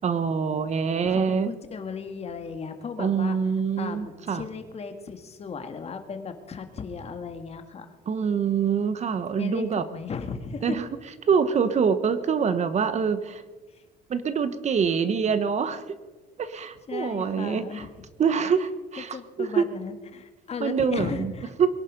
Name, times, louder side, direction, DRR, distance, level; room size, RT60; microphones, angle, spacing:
voice 1, 0.0-1.5 3.0-4.5 8.1-9.8 10.6-10.9 11.3-13.4 14.1-15.8 16.4-17.9 18.2-19.7 20.6-21.3 21.6-21.7, right 6 dB, 40° right, 12 dB, 1.1 m, -25 dB
voice 2, 1.0-3.4 3.8-7.9 9.4-10.8 16.9-17.9 19.1-21.5, left 5 dB, 40° left, 7 dB, 2.0 m, -35 dB
22.5 x 10.5 x 5.3 m, 1.3 s
cardioid pair, 110°, 17 cm